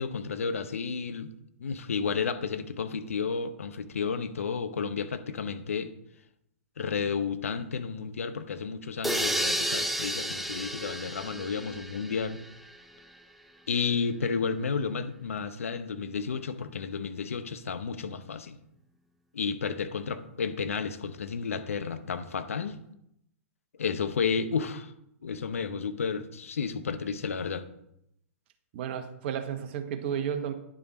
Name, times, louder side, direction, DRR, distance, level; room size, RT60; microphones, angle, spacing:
voice 1, 0.0-1.3 1.6-5.9 6.8-12.4 13.7-18.6 19.3-22.8 23.8-24.9 25.2-27.7, left 5 dB, 75° left, 0.9 m, -32 dB
sound 1, 9.0-12.8, equal, ahead, 0.6 m, -32 dB
voice 2, 28.7-30.5, right 8 dB, 50° right, 1.2 m, -32 dB
9.9 x 6.3 x 4.3 m
figure-of-eight pair, 110°, 8 cm